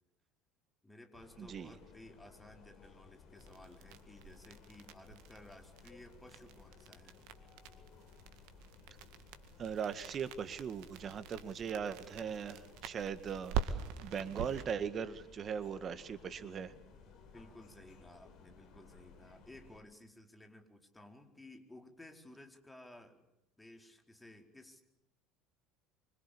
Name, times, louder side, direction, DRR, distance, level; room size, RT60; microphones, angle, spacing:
voice 1, 0.8-7.2 17.3-23.2 23.6-24.8, left 1 dB, 10° left, 4 dB, 4.5 m, -56 dB
sound 1, 1.1-19.8, left 5 dB, 55° left, 5.0 m, -59 dB
voice 2, 1.4-1.7 9.6-16.7, right 7 dB, 40° right, 12 dB, 1.9 m, -39 dB
sound 2, 3.4-14.7, right 7 dB, 65° right, 2.1 m, -44 dB
26.0 x 25.0 x 8.6 m, 0.84 s
hypercardioid pair, 70°, 0 cm